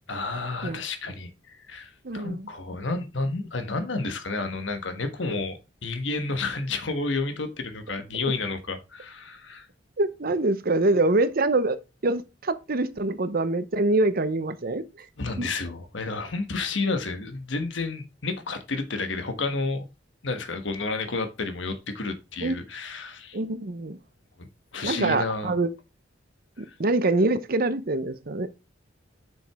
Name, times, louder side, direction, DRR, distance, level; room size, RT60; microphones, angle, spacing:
voice 1, 0.1-9.7 15.2-19.9 20.2-23.4 24.4-24.5 24.7-25.5 26.7-26.8, left 3 dB, 85° left, 1.3 m, -31 dB
voice 2, 2.0-2.5 10.0-11.8 12.0-15.1 15.4-15.5 22.4-22.5 23.3-24.0 24.8-25.7 26.6-28.5, right 2 dB, 55° right, 0.8 m, -25 dB
7.6 x 6.2 x 3.5 m
head